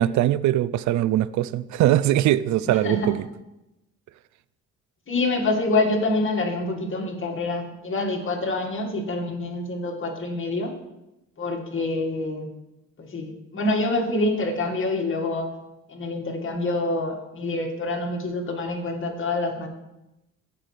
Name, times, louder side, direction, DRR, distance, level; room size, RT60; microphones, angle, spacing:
voice 1, 0.0-3.3, right 13 dB, 70° right, 17 dB, 0.4 m, -21 dB
voice 2, 5.1-10.7 11.4-12.5 13.0-15.5 15.9-19.7, left 2 dB, 40° left, 2 dB, 1.9 m, -26 dB
15.0 x 5.9 x 3.3 m, 0.93 s
cardioid pair, 90°, 30 cm